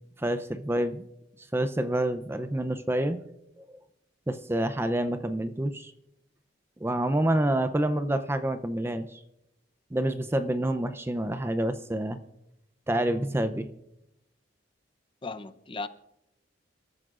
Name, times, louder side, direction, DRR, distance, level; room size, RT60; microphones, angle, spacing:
voice 1, 0.2-1.0 1.5-3.2 3.6-3.7 4.3-5.9 6.8-9.2 9.9-12.2 12.9-13.7, right 1 dB, 15° right, 10 dB, 0.5 m, -28 dB
voice 2, 15.2-15.9, left 3 dB, 25° left, 12 dB, 0.6 m, -36 dB
28.5 x 13.5 x 2.5 m, 0.85 s
head